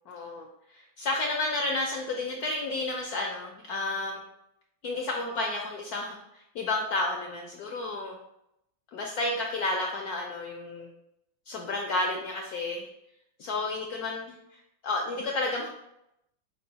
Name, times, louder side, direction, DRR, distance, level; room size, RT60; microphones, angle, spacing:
voice 1, 0.1-4.2 4.8-8.2 8.9-10.9 11.5-12.9 13.4-14.4 14.8-15.7, left 2 dB, 80° left, 0 dB, 0.8 m, -31 dB
5.6 x 2.2 x 3.9 m, 0.83 s
omnidirectional pair, 2.1 m